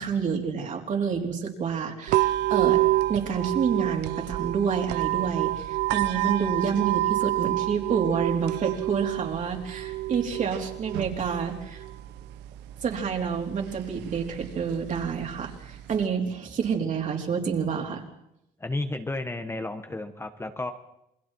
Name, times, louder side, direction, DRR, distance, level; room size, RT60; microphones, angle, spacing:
voice 1, 0.0-2.8 3.1-11.8 12.8-18.0, right 6 dB, 50° right, 1 dB, 4.0 m, -28 dB
sound 1, 2.1-16.1, right 16 dB, 90° right, 0.8 m, -29 dB
voice 2, 18.6-20.7, left 2 dB, 15° left, 7 dB, 1.3 m, -32 dB
28.5 x 21.0 x 4.7 m, 0.82 s
cardioid pair, 110°, 17 cm